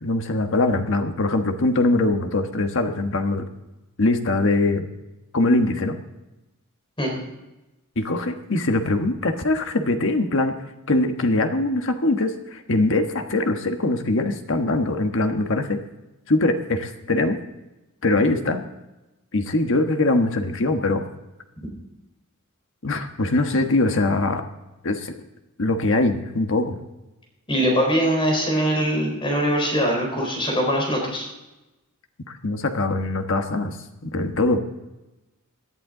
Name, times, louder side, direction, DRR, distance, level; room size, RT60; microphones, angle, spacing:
voice 1, 0.0-3.4 4.0-4.8 5.3-6.0 8.0-10.5 10.9-15.8 16.3-17.4 18.0-18.6 19.3-21.0 22.8-24.4 24.8-25.1 25.6-26.8 32.4-33.8 34.0-34.6, left 2 dB, 60° left, 6 dB, 1.3 m, -22 dB
voice 2, 27.5-31.3, equal, 25° left, 0 dB, 4.3 m, -22 dB
18.0 x 11.0 x 3.8 m, 1.0 s
head